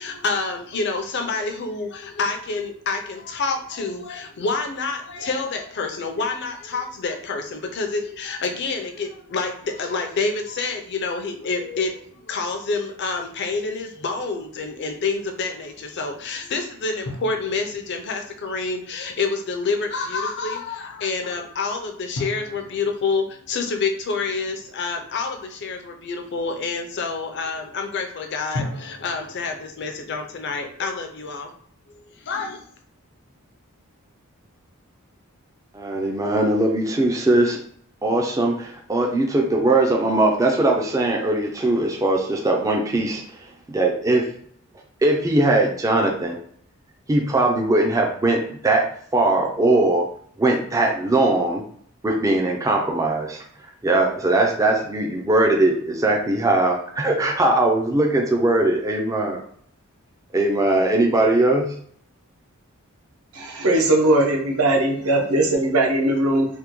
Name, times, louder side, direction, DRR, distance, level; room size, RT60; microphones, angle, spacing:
voice 1, 0.0-31.5 31.9-32.6, left 4 dB, 50° left, 5 dB, 0.5 m, -28 dB
sound 1, 17.1-19.3 22.2-25.1 28.5-30.4, left 1 dB, 85° left, 0.8 m, -38 dB
voice 2, 35.7-37.6 38.0-43.2 43.7-44.3 45.0-46.4 47.1-50.1 50.4-51.6 52.0-53.4 53.8-59.4 60.3-61.7, right 2 dB, 15° right, 1 dB, 0.3 m, -20 dB
voice 3, 63.3-66.5, right 1 dB, 75° right, 0 dB, 0.8 m, -19 dB
3.3 x 2.1 x 3.0 m, 0.63 s
head